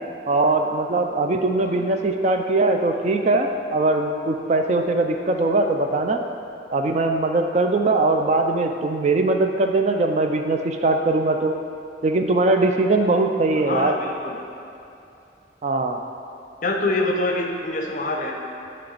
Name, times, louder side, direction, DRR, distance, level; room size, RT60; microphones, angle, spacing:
voice 1, 0.3-6.2 6.7-11.5 12.0-13.9 15.6-16.0, right 2 dB, 40° right, 4 dB, 0.3 m, -21 dB
voice 2, 13.6-14.3 16.6-18.3, left 2 dB, 45° left, 1 dB, 0.6 m, -25 dB
9.7 x 3.3 x 4.0 m, 2.7 s
head